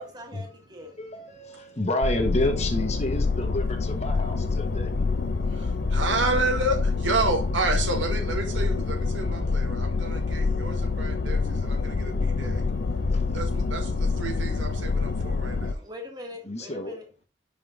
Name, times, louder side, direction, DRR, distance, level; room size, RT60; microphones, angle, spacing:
voice 1, 0.0-1.0 15.4-17.0, left 1 dB, 20° right, 1.5 m, -42 dB
voice 2, 1.0-4.9 13.1-13.4 15.6-15.7 16.4-17.0, left 1 dB, 35° left, 1.1 m, -30 dB
sound 1, 2.0-15.7, left 4 dB, 60° left, 0.7 m, -26 dB
voice 3, 5.5-12.6 13.3-15.8, right 2 dB, 90° right, 1.6 m, -30 dB
5.7 x 5.2 x 3.8 m
head